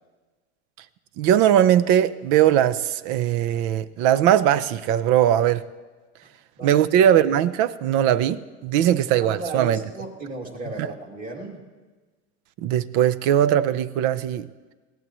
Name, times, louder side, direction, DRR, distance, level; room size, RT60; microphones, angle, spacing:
voice 1, 1.2-5.6 6.6-9.8 10.8-10.9 12.6-14.5, right 10 dB, 60° right, 0.7 m, -20 dB
voice 2, 9.2-11.6, right 2 dB, 25° right, 2.7 m, -35 dB
20.0 x 16.5 x 3.1 m
supercardioid pair, 115°, 33 cm